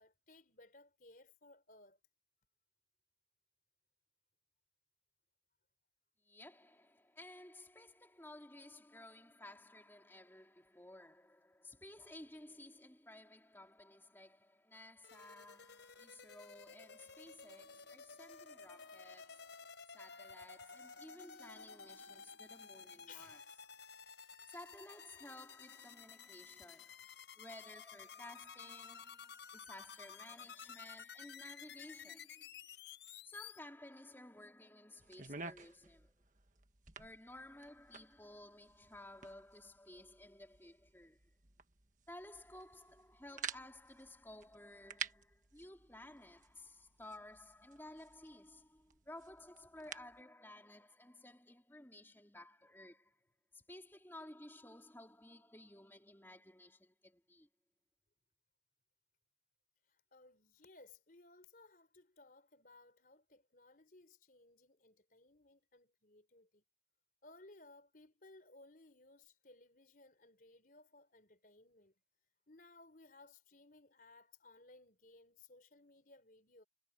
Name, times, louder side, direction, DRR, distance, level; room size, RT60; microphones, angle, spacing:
voice 1, 0.0-2.0 23.0-23.4 59.9-66.6 67.2-71.9 72.5-76.6, left 3 dB, 50° left, 4.3 m, -61 dB
voice 2, 6.2-23.4 24.5-27.0 27.4-32.5 33.2-36.2 37.0-41.3 42.1-53.2 53.5-57.5, left 1 dB, 10° left, 3.4 m, -55 dB
sound 1, 15.0-33.6, left 6 dB, 75° left, 4.7 m, -54 dB
sound 2, 35.0-50.2, right 6 dB, 45° right, 1.6 m, -52 dB
head